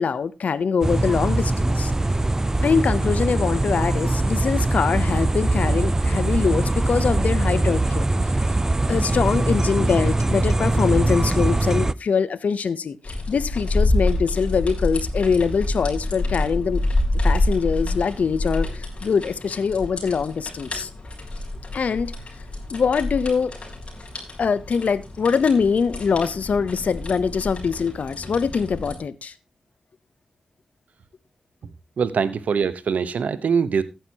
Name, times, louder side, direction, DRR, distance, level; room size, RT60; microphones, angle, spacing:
voice 1, 0.0-1.9 2.6-8.1 8.9-16.8 17.2-20.9 21.7-22.1 22.7-23.5 24.4-29.3, left 6 dB, 75° left, 0.8 m, -23 dB
sound 1, 0.8-11.9, right 2 dB, 20° right, 0.5 m, -22 dB
sound 2, 13.0-29.0, left 2 dB, 50° left, 3.7 m, -27 dB
voice 2, 32.0-33.8, right 6 dB, 85° right, 0.9 m, -23 dB
14.5 x 9.1 x 2.9 m
cardioid pair, 70°, 3 cm